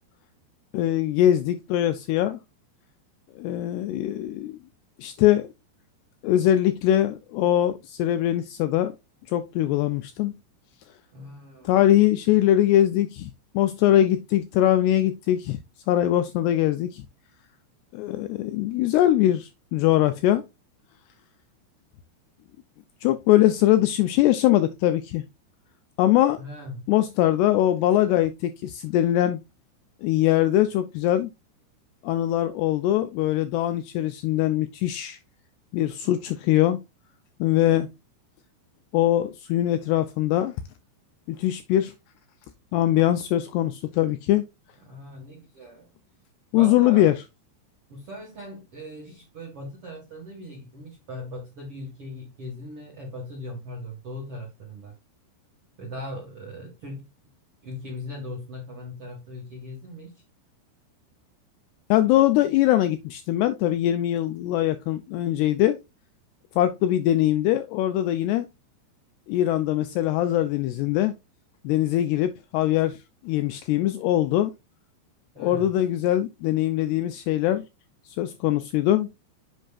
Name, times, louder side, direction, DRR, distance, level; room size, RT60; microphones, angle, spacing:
voice 1, 0.7-2.4 3.4-4.6 5.0-5.5 6.2-8.9 9.3-10.4 11.7-13.3 13.6-15.6 15.9-17.0 17.9-20.4 23.0-25.2 26.0-26.4 26.9-29.4 30.0-31.3 32.0-35.2 35.7-36.8 37.4-37.9 38.9-40.5 41.3-41.9 42.7-44.5 46.5-47.1 61.9-65.8 66.6-68.5 69.3-71.1 71.6-73.0 73.2-74.5 75.4-77.7 78.2-79.1, left 13 dB, 85° left, 2.4 m, -22 dB
voice 2, 11.1-11.8 26.4-26.8 44.9-45.9 46.5-47.1 47.9-54.9 55.8-57.0 57.6-60.2 75.3-75.7, left 1 dB, 60° right, 1.4 m, -39 dB
7.8 x 6.3 x 2.4 m
omnidirectional pair, 5.2 m